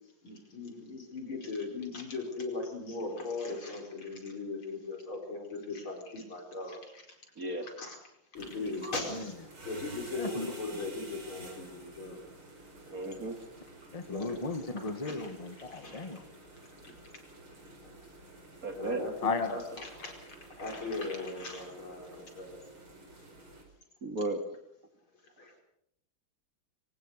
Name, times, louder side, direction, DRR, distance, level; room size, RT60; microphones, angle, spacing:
voice 1, 0.2-7.0 7.6-8.0 8.3-9.4 9.7-12.2 14.1-14.4 15.0-15.3 15.7-16.1 16.8-16.9 18.7-22.6 25.4-25.6, left 3 dB, 80° left, 2 dB, 5.8 m, -39 dB
voice 2, 7.4-7.7 8.8-8.9 12.9-13.4 18.6-19.1 24.0-24.4, right 2 dB, 45° right, 6 dB, 2.6 m, -35 dB
sound 1, 8.3-23.6, right 2 dB, 80° right, 5.8 m, -51 dB
voice 3, 13.9-16.2 19.2-19.5, left 4 dB, 20° left, 8 dB, 1.6 m, -35 dB
23.0 x 20.0 x 6.6 m, 0.77 s
omnidirectional pair, 2.3 m